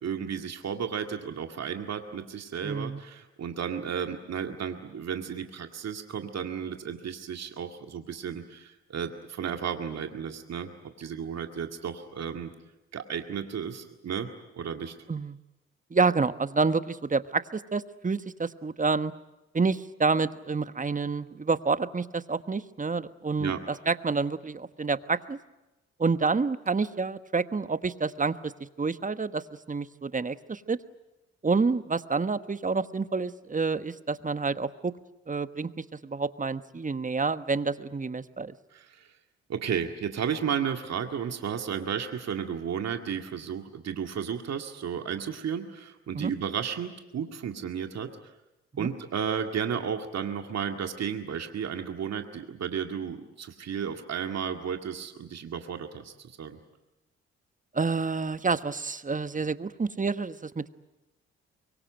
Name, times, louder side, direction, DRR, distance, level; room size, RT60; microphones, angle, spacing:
voice 1, 0.0-10.7 11.0-12.5 12.9-14.3 14.5-14.9 23.4-23.6 38.7-39.1 39.5-48.1 48.8-56.6, right 7 dB, 55° right, 5 dB, 2.1 m, -33 dB
voice 2, 2.6-3.0 15.1-15.4 15.9-19.1 19.5-25.4 26.0-28.5 28.8-30.8 31.4-34.9 35.3-38.5 46.1-46.3 48.8-48.9 57.7-60.7, right 4 dB, 25° right, 13 dB, 1.3 m, -28 dB
24.0 x 23.5 x 9.1 m, 0.99 s
hypercardioid pair, 45°, 31 cm